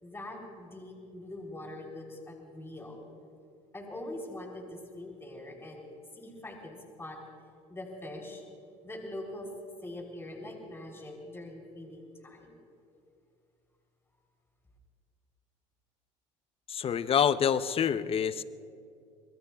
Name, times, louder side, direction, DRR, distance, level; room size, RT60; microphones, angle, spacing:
voice 1, 0.0-3.1 3.7-5.9 6.1-7.2 7.7-8.4 8.8-9.5 9.8-12.6 12.9-13.0, left 1 dB, 15° left, 1 dB, 3.4 m, -43 dB
voice 2, 16.7-18.4, left 8 dB, 35° left, 15 dB, 0.7 m, -27 dB
25.5 x 21.0 x 2.3 m, 2.5 s
supercardioid pair, 85°, 16 cm